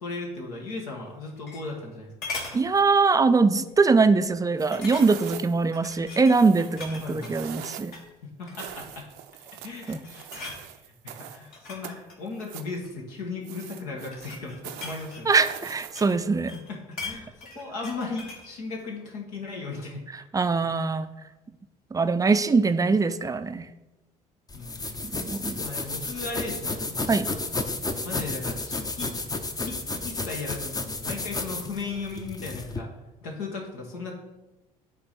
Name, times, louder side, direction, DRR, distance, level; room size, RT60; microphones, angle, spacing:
voice 1, 0.0-2.1 7.0-7.4 8.2-9.1 9.4-15.3 16.7-17.3 17.5-20.0 24.5-25.0 25.6-27.2 28.0-29.1 29.6-32.9 33.2-34.1, left 3 dB, 75° left, -1 dB, 1.5 m, -36 dB
sound 1, 1.1-1.9 2.2-2.6 3.1-3.4 3.7-3.8 4.7-5.4 5.7-7.4 7.8-8.1 8.5-9.0 9.5-9.8 10.0-10.6 11.4-13.0 13.8-16.2 16.5-18.5 18.8-18.9, left 3 dB, 55° left, 2.0 m, -40 dB
voice 2, 2.5-8.0 9.9-10.0 15.3-16.5 20.3-21.1 21.9-23.7 25.1-25.6 27.1-27.3, right 4 dB, 20° right, 11 dB, 0.5 m, -22 dB
sound 2, 4.6-5.7 6.3-8.0 8.5-11.5 11.8-12.8 13.4-16.3, right 11 dB, 60° right, 0.6 m, -43 dB
sound 3, 24.5-32.8, left 3 dB, 20° left, 0.8 m, -32 dB
9.9 x 3.9 x 4.2 m, 1.0 s
figure-of-eight pair, 55°, 19 cm